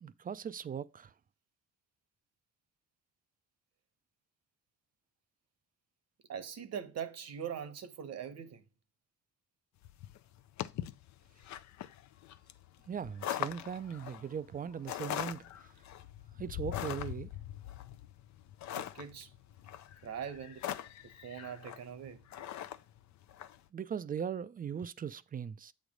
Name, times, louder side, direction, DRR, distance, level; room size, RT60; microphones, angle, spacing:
voice 1, 0.0-1.1 12.9-15.5 16.4-17.3 23.7-25.7, right 7 dB, 30° right, 0.4 m, -39 dB
voice 2, 6.3-8.6 18.7-19.3 20.0-20.7 21.0-22.2, right 8 dB, 60° right, 1.0 m, -42 dB
sound 1, 9.8-23.6, left 11 dB, 65° left, 0.5 m, -42 dB
8.0 x 3.2 x 5.1 m
cardioid pair, 90°, 30 cm